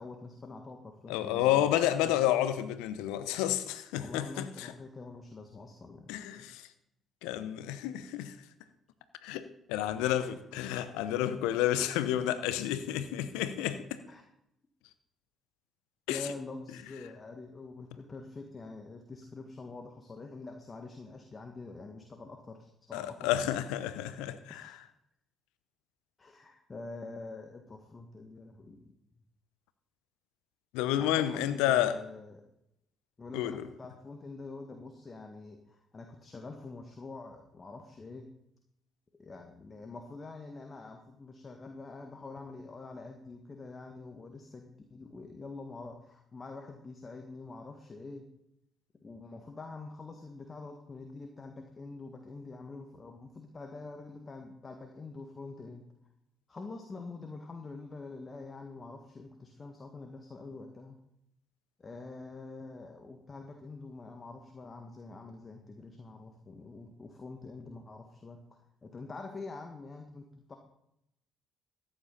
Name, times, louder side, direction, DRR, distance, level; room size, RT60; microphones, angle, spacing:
voice 1, 0.0-2.2 3.9-6.6 10.0-10.3 14.1-14.2 16.1-23.3 24.5-24.8 26.2-28.9 31.0-32.4 33.2-38.3 39.2-48.3 49.0-55.8 56.5-61.0 61.8-68.4 68.8-70.6, left 3 dB, 35° left, 1.8 m, -46 dB
voice 2, 1.1-4.7 6.1-6.7 7.2-8.3 9.2-14.0 16.1-16.2 22.9-24.7 30.7-32.0 33.3-33.6, left 12 dB, 75° left, 0.8 m, -30 dB
14.5 x 10.5 x 4.1 m
hypercardioid pair, 50°, 0 cm